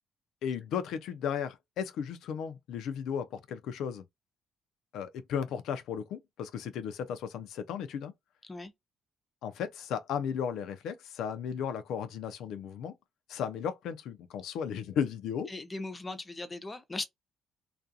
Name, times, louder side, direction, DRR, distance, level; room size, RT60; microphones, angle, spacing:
voice 1, 0.4-4.0 4.9-8.1 9.4-12.9 13.3-15.5, left 7 dB, 85° left, 0.4 m, -35 dB
voice 2, 15.5-17.1, left 2 dB, 20° left, 0.5 m, -38 dB
2.4 x 2.3 x 2.6 m
cardioid pair, 90°, 0 cm